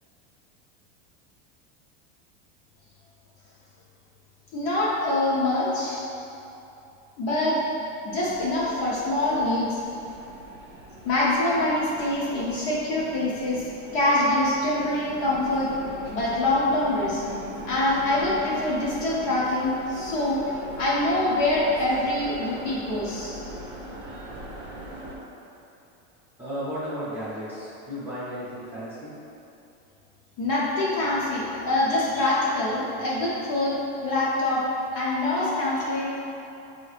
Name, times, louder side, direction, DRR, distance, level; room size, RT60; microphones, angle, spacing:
voice 1, 4.5-6.0 7.2-7.6 8.0-9.8 11.0-15.7 16.1-17.2 17.6-20.4 20.8-23.4 30.4-34.6 34.9-36.1, left 1 dB, 35° left, -6 dB, 0.6 m, -25 dB
sound 1, 8.1-25.2, right 1 dB, 40° right, 0.7 m, -41 dB
voice 2, 26.4-29.1, equal, 5° right, -12 dB, 0.7 m, -34 dB
5.6 x 2.8 x 3.2 m, 2.9 s
supercardioid pair, 170°, 36 cm